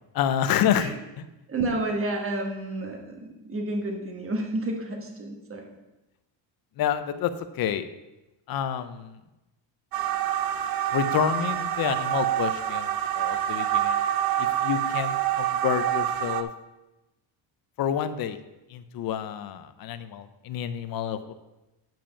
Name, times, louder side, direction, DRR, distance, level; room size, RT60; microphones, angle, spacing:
voice 1, 0.1-0.9 1.2-1.3 6.8-7.9 8.5-9.2 10.9-14.0 14.4-16.5 17.8-18.4 18.7-21.3, left 9 dB, 45° left, 11 dB, 0.6 m, -28 dB
voice 2, 1.5-5.7, right 2 dB, 25° right, 2 dB, 1.3 m, -30 dB
sound 1, 9.9-16.4, right 11 dB, 50° right, 0.5 m, -26 dB
9.0 x 5.1 x 5.5 m, 1.0 s
cardioid pair, 160°, 49 cm